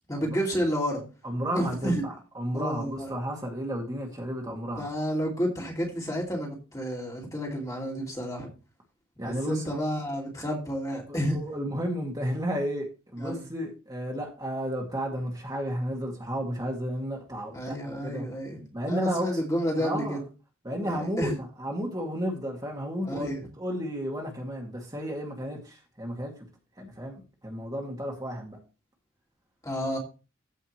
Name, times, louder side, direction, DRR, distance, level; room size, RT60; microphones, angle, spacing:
voice 1, 0.1-1.0 1.5-2.0 2.5-3.1 4.8-8.5 9.2-11.4 13.2-13.5 17.5-20.2 20.8-21.3 23.1-23.5 29.6-30.0, equal, 15° left, 2.4 m, -30 dB
voice 2, 1.2-4.9 9.2-9.6 11.1-18.3 18.7-19.5 19.8-20.2 20.6-21.3 21.6-23.3 23.6-26.3 26.8-28.6, equal, 15° right, 2.1 m, -32 dB
15.0 x 5.5 x 3.1 m
head